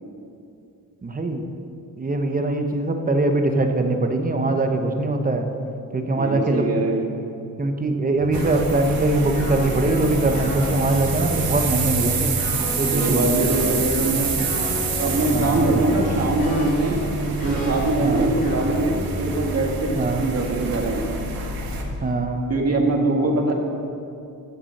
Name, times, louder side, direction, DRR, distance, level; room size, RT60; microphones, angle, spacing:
voice 1, 1.0-1.4 2.0-5.5 5.9-6.7 7.6-12.4 12.8-13.3 14.7-14.8 15.3-15.8 18.0-18.3 20.0-20.2 22.0-22.5, right 2 dB, 25° right, 5 dB, 0.9 m, -22 dB
voice 2, 6.2-7.0 12.9-14.4 15.0-17.1 17.4-21.1 22.5-23.5, right 2 dB, 45° right, 1 dB, 1.8 m, -22 dB
sound 1, 8.2-19.6, equal, 25° left, 3.2 m, -30 dB
sound 2, 8.3-21.8, right 4 dB, 75° right, 1.7 m, -28 dB
15.0 x 7.2 x 6.5 m, 2.6 s
wide cardioid pair, 165°, 35 cm